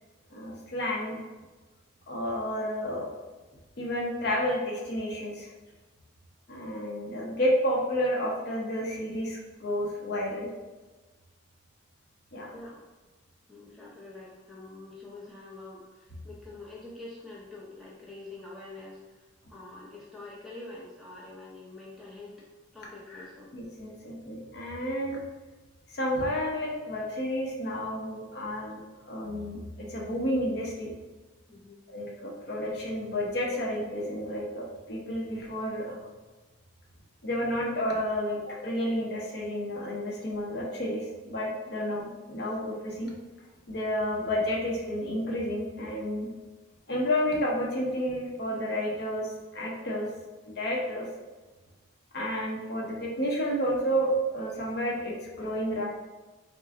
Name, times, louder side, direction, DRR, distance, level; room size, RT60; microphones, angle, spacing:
voice 1, 0.3-1.2 2.1-3.1 3.8-5.5 6.5-10.5 12.3-12.5 23.5-25.2 25.9-31.0 31.9-36.0 37.2-43.1 43.7-46.3 46.9-50.1 50.5-51.1 52.1-55.8, equal, 50° left, -2 dB, 0.7 m, -31 dB
voice 2, 12.5-12.9 13.5-23.6 23.9-24.0 31.5-31.8, left 2 dB, ahead, -7 dB, 0.6 m, -46 dB
3.7 x 2.2 x 3.6 m, 1.2 s
head